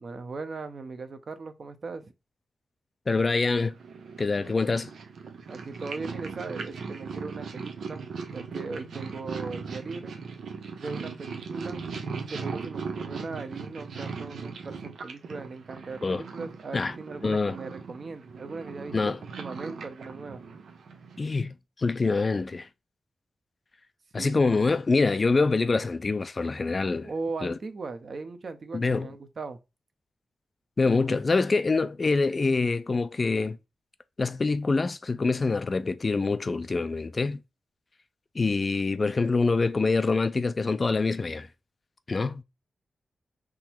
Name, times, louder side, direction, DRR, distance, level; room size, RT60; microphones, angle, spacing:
voice 1, 0.0-2.1 5.5-10.1 10.8-11.8 12.3-20.4 24.2-24.4 27.0-29.6, right 4 dB, 50° right, 0.8 m, -38 dB
voice 2, 3.1-3.7 4.2-4.9 16.0-16.2 16.7-16.9 17.2-17.6 18.9-19.2 21.2-22.7 24.1-27.1 27.4-27.6 28.7-29.1 30.8-33.6 34.2-37.4 38.3-41.5 42.1-42.4, left 3 dB, 35° left, 0.4 m, -25 dB
Purr, 3.7-21.3, right 5 dB, 85° right, 0.8 m, -39 dB
3.7 x 3.0 x 4.4 m
wide cardioid pair, 125°, 0 cm